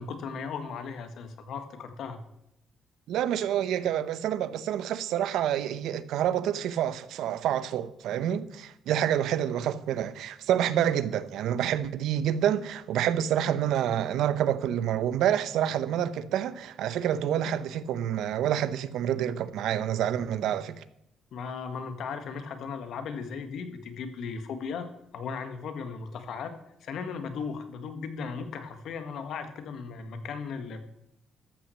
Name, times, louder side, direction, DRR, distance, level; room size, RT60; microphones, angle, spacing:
voice 1, 0.0-2.2 21.3-24.9 25.1-26.6 26.8-30.8, left 5 dB, 75° left, 1.7 m, -36 dB
voice 2, 3.1-20.8, right 10 dB, 85° right, 0.7 m, -28 dB
13.5 x 6.1 x 7.1 m
cardioid pair, 90°, 0 cm